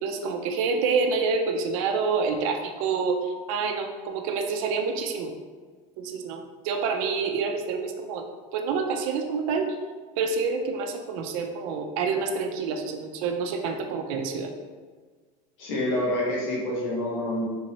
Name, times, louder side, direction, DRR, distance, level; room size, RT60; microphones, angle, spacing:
voice 1, 0.0-5.3 6.0-6.4 6.6-8.2 8.5-9.7 10.2-14.5, right 5 dB, 70° right, 4 dB, 0.5 m, -27 dB
voice 2, 15.6-17.5, left 1 dB, 80° left, -5 dB, 1.3 m, -27 dB
3.5 x 3.0 x 2.9 m, 1.5 s
supercardioid pair, 140°, 18 cm